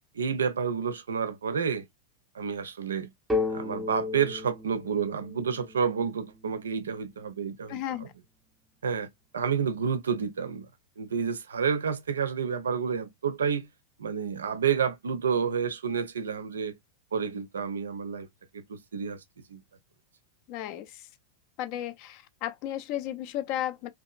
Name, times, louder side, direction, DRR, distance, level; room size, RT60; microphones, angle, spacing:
voice 1, 0.1-1.9 2.3-3.1 3.5-8.1 8.8-9.1 9.3-10.7 11.0-13.7 14.0-16.7 17.1-18.3 18.5-19.2 19.5-19.6, right 6 dB, 70° right, 0.5 m, -29 dB
sound 1, 3.3-7.0, left 3 dB, 10° right, 0.7 m, -34 dB
voice 2, 7.7-8.1 20.5-21.1 21.6-23.9, left 12 dB, 45° left, 0.4 m, -34 dB
2.8 x 2.3 x 2.3 m
figure-of-eight pair, 90°, 0 cm